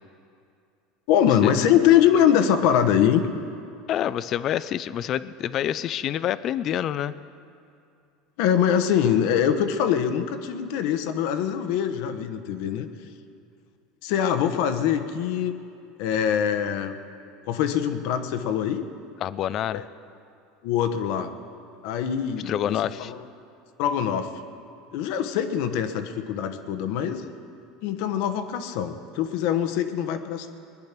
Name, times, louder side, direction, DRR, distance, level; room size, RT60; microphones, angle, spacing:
voice 1, 1.1-3.3 8.4-12.9 14.0-15.5 16.0-16.9 17.5-18.8 19.7-19.9 20.6-21.3 21.8-23.2 23.8-24.3 24.9-27.4 27.8-30.5, left 9 dB, 65° left, 9 dB, 1.1 m, -23 dB
voice 2, 3.9-7.1 19.2-19.8 22.5-23.1, left 10 dB, 40° left, 16 dB, 0.5 m, -27 dB
21.0 x 10.5 x 5.9 m, 2.5 s
supercardioid pair, 145°, 0 cm